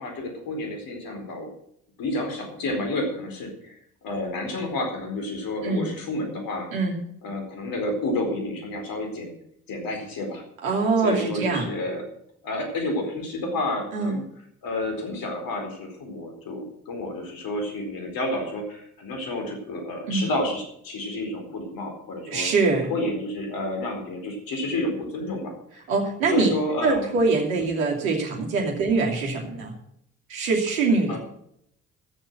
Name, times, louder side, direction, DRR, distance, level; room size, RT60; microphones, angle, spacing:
voice 1, 0.0-1.5 2.0-6.7 7.2-9.3 9.7-10.4 11.0-12.0 12.4-14.2 14.6-22.5 22.9-25.9 26.3-27.1 31.1-31.2, left 1 dB, 55° left, 3 dB, 4.5 m, -30 dB
voice 2, 10.6-11.7 13.9-14.2 20.1-20.3 22.3-22.9 25.9-26.5 26.8-29.7 30.3-31.2, right 4 dB, 80° right, 0 dB, 2.8 m, -23 dB
14.5 x 7.2 x 8.0 m, 0.72 s
hypercardioid pair, 50°, 40 cm